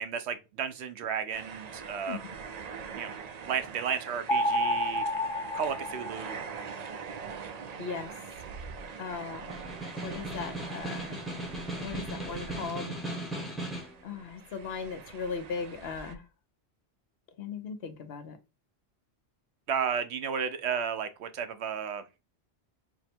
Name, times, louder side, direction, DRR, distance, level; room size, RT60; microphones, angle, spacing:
voice 1, 0.0-2.2 2.9-3.1 3.4-5.1 5.5-6.4 19.7-22.0, right 7 dB, 80° right, 0.9 m, -33 dB
sound 1, 1.3-13.2 13.5-16.2, right 6 dB, 55° right, 0.4 m, -43 dB
sound 2, 4.3-6.7, left 1 dB, 50° left, 0.3 m, -30 dB
voice 2, 7.8-8.1 9.0-9.5 10.0-11.2 11.8-12.9 14.0-16.2 17.4-18.4, left 5 dB, 65° left, 0.9 m, -38 dB
Snare drum, 9.5-14.0, right 1 dB, ahead, 0.7 m, -37 dB
4.4 x 2.1 x 4.2 m
omnidirectional pair, 1.1 m